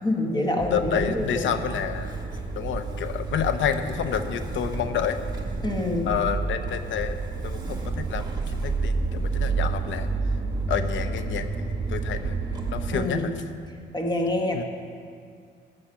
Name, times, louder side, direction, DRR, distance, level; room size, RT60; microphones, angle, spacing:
voice 1, 0.0-1.5 5.6-6.1 12.9-13.4 13.9-14.6, left 1 dB, 20° left, 2 dB, 1.6 m, -26 dB
voice 2, 0.6-2.2 2.6-5.2 6.1-7.2 7.4-10.1 10.7-11.5 11.9-12.4 12.7-13.4 14.5-14.6, left 8 dB, 75° left, 10 dB, 0.8 m, -29 dB
Motor vehicle (road) / Engine starting, 0.6-13.1, right 4 dB, 20° right, 1.7 m, -30 dB
13.0 x 7.7 x 5.7 m, 2.2 s
cardioid pair, 90°, 20 cm